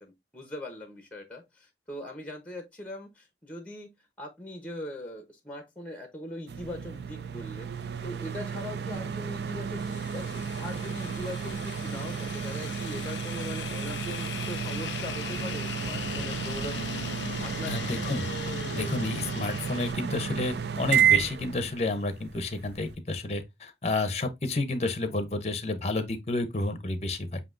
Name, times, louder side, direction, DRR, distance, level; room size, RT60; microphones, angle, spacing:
voice 1, 0.0-7.7 8.0-16.9 17.4-18.2, left 1 dB, 10° left, 0.9 m, -41 dB
sound 1, 6.5-22.9, right 7 dB, 65° right, 0.4 m, -32 dB
sound 2, 9.8-19.9, left 8 dB, 80° left, 0.4 m, -39 dB
voice 2, 17.7-18.3 18.7-27.4, left 2 dB, 35° left, 0.7 m, -30 dB
7.5 x 2.8 x 2.5 m
head